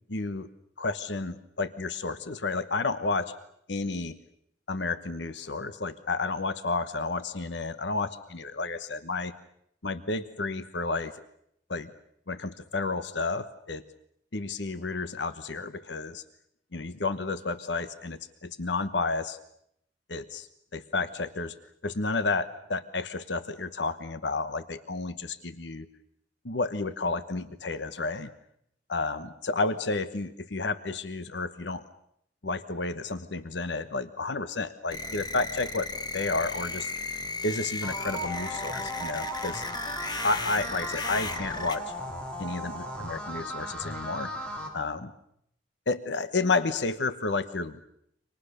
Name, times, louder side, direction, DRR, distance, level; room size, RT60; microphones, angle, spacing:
voice 1, 0.1-0.5 0.8-3.4 3.7-4.2 4.7-9.3 9.8-11.2 11.7-11.9 12.3-13.8 14.3-16.2 16.7-19.4 20.1-21.5 21.8-25.9 26.4-28.3 28.9-31.8 32.4-35.9 36.1-36.9 37.4-39.6 40.2-41.9 42.4-44.3 44.7-45.1 45.9-47.8, left 3 dB, 75° left, 11 dB, 1.1 m, -31 dB
sound 1, 34.9-41.8, left 3 dB, 25° left, 1.4 m, -35 dB
sound 2, 37.8-44.7, equal, 5° left, 5.7 m, -37 dB
29.5 x 26.0 x 6.8 m, 0.74 s
head